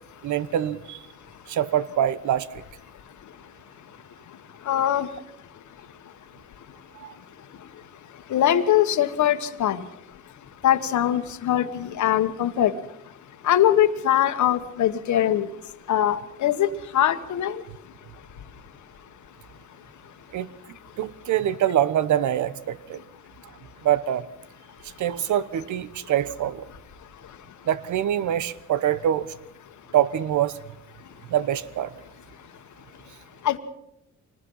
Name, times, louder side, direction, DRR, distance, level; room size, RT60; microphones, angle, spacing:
voice 1, 0.2-1.0 1.5-2.6 7.0-7.1 20.3-20.5 21.0-23.0 23.8-24.3 24.8-26.6 27.7-29.3 29.9-30.6 31.3-31.9, right 10 dB, 75° right, 16 dB, 1.2 m, -24 dB
voice 2, 4.7-5.1 8.3-9.8 10.6-12.7 13.4-15.5 15.9-16.7 16.9-17.6 33.4-33.6, left 11 dB, 70° left, 10 dB, 1.6 m, -22 dB
25.5 x 20.0 x 5.7 m, 0.84 s
cardioid pair, 90°, 30 cm